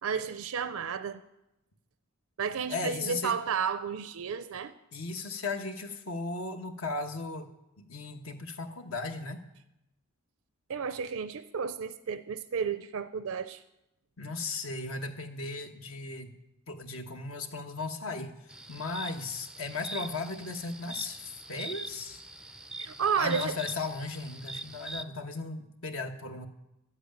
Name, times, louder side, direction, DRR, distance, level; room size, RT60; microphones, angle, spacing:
voice 1, 0.0-1.2 2.4-4.7 10.7-13.6 22.8-23.6, right 6 dB, 70° right, 11 dB, 0.5 m, -32 dB
voice 2, 2.7-3.4 4.9-7.5 7.8-9.4 14.2-16.4 16.7-22.2 23.2-26.5, left 3 dB, 70° left, 6 dB, 1.3 m, -36 dB
sound 1, 18.5-25.0, right 2 dB, 5° right, 0.4 m, -43 dB
12.5 x 8.1 x 9.0 m, 0.90 s
head